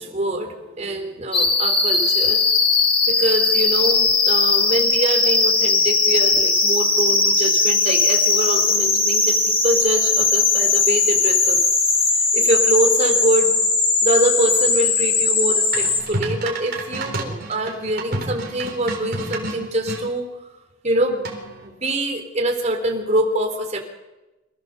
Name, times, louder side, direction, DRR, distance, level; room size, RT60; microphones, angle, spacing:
voice 1, 0.0-2.4 3.1-11.6 12.1-13.6 14.0-20.3 20.8-21.3 21.6-23.8, right 1 dB, 35° right, 3 dB, 3.9 m, -24 dB
sound 1, 1.3-16.0, left 4 dB, 30° left, 3.5 m, -18 dB
sound 2, 15.7-20.0 21.2-21.7, right 2 dB, 55° right, 4.3 m, -30 dB
27.5 x 16.0 x 7.1 m, 1.1 s
head